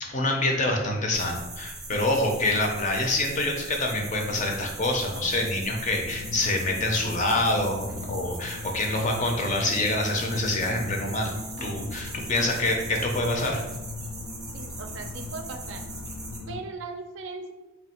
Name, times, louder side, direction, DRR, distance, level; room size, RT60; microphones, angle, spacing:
voice 1, 0.0-11.3 11.6-13.6, left 2 dB, 35° left, 1 dB, 0.5 m, -26 dB
sound 1, 1.1-16.4, right 3 dB, 15° right, 0.6 m, -41 dB
sound 2, 6.1-16.6, left 4 dB, 85° left, 0.3 m, -39 dB
voice 2, 14.5-15.9 16.5-17.5, right 4 dB, 60° right, 6 dB, 0.4 m, -38 dB
3.2 x 2.3 x 4.2 m, 1.0 s
head